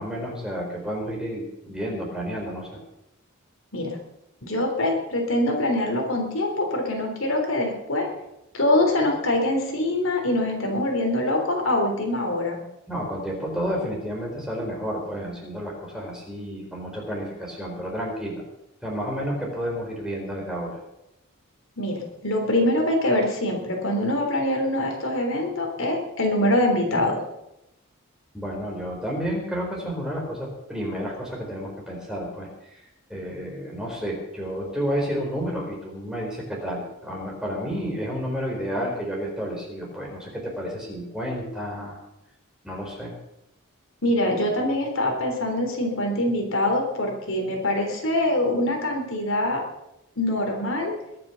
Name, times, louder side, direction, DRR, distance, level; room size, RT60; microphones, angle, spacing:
voice 1, 0.0-2.8 12.9-18.4 18.8-20.8 28.3-32.8 33.1-42.0 42.6-43.1, equal, 5° right, -2 dB, 4.6 m, -31 dB
voice 2, 4.4-8.1 8.5-12.6 21.8-27.2 44.0-49.6 50.2-50.9, left 1 dB, 70° left, 2 dB, 3.6 m, -24 dB
22.0 x 7.8 x 7.0 m, 0.88 s
head